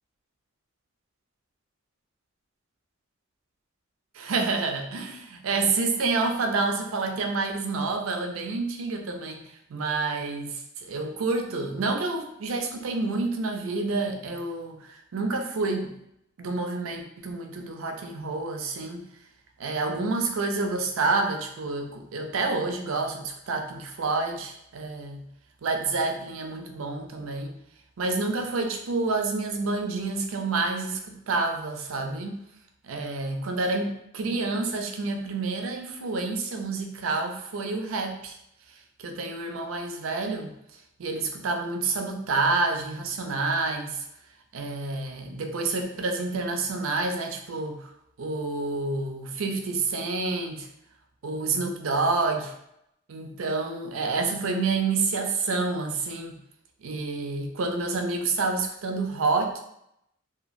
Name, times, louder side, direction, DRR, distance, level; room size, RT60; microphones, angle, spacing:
voice 1, 4.1-9.4 9.7-15.9 16.4-19.0 19.6-25.2 25.6-27.5 28.0-31.0 31.3-32.3 32.8-38.4 39.0-40.5 41.0-44.0 44.5-47.9 48.2-50.7 51.2-52.5 53.1-56.4 56.8-59.6, right 3 dB, 85° right, 4 dB, 0.5 m, -28 dB
2.9 x 2.4 x 2.5 m, 0.77 s
head